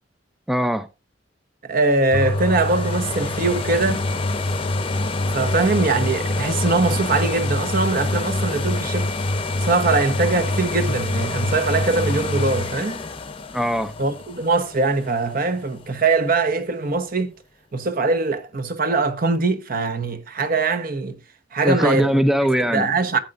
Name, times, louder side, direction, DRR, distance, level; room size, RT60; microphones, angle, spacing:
voice 1, 0.5-0.9 13.5-13.9 21.6-22.9, equal, ahead, 0.4 m, -20 dB
voice 2, 1.7-4.0 5.3-9.1 9.6-13.0 14.0-17.3 17.7-21.2 21.5-22.2 22.6-23.2, right 3 dB, 50° right, 0.9 m, -22 dB
sound 1, 2.1-15.8 16.3-16.4, left 2 dB, 30° left, 0.7 m, -25 dB
14.5 x 7.8 x 2.5 m
head